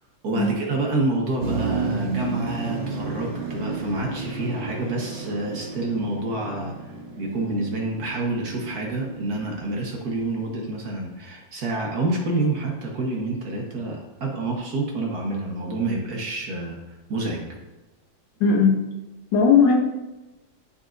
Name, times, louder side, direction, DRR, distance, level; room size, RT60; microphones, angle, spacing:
voice 1, 0.2-6.7 7.2-16.8 17.1-17.5, right 2 dB, 55° right, -1 dB, 1.6 m, -28 dB
Motor vehicle (road), 1.4-10.4, right 3 dB, 40° right, 0.9 m, -32 dB
voice 2, 18.4-18.9 19.3-19.8, left 5 dB, 70° left, 3 dB, 1.4 m, -17 dB
12.0 x 4.1 x 2.6 m, 1.1 s
omnidirectional pair, 2.1 m